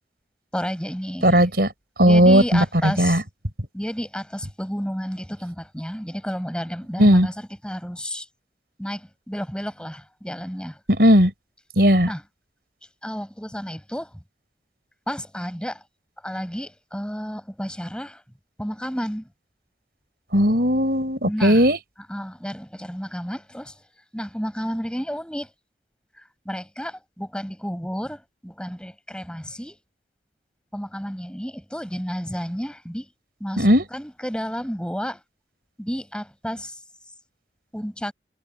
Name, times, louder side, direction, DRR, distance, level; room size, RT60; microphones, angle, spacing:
voice 1, 0.5-1.4 2.0-3.2 3.7-8.3 8.8-10.8 12.1-12.2 13.0-14.1 15.1-15.8 16.2-18.2 18.6-19.3 21.2-21.6 22.1-23.7 24.1-25.5 26.1-29.8 30.7-33.1 33.4-35.2 35.8-36.8 37.7-38.1, equal, 5° left, 6.3 m, -31 dB
voice 2, 1.2-1.7 2.0-3.2 7.0-7.3 10.9-11.3 11.8-12.1 20.3-21.8 33.6-33.8, equal, 60° right, 5.7 m, -16 dB
head